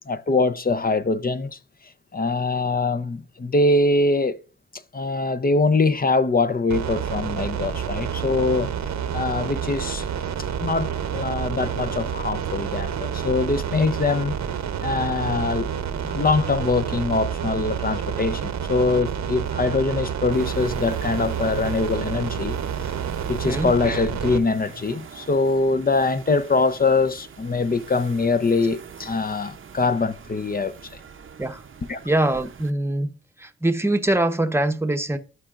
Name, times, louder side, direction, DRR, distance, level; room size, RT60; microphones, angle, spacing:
voice 1, 0.1-1.6 2.1-4.4 4.9-8.7 9.1-10.1 10.6-14.4 14.8-15.7 16.0-22.6 22.8-22.9 23.3-30.7 31.9-32.0, left 3 dB, 30° left, 0.7 m, -23 dB
sound 1, 6.7-24.4, right 8 dB, 70° right, 0.9 m, -29 dB
sound 2, 20.3-32.7, right 7 dB, 45° right, 0.7 m, -44 dB
voice 2, 23.4-23.8 31.4-31.6 32.0-33.1 33.4-35.2, right 1 dB, 10° right, 0.9 m, -23 dB
13.0 x 4.6 x 2.5 m
supercardioid pair, 45°, 29 cm